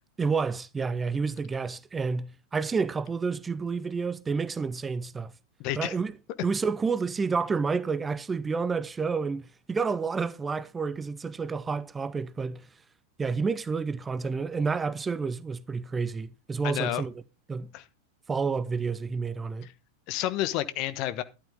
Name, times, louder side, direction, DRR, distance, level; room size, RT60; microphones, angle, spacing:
voice 1, 0.2-5.3 5.8-6.1 6.4-12.7 13.2-17.1 17.5-17.7 18.3-19.7, right 5 dB, 15° right, 0.6 m, -29 dB
voice 2, 5.6-5.9 16.6-17.0 17.7-17.8 19.6-19.7 20.1-21.2, left 14 dB, 40° left, 1.1 m, -30 dB
12.0 x 11.5 x 3.6 m
figure-of-eight pair, 90°, 0 cm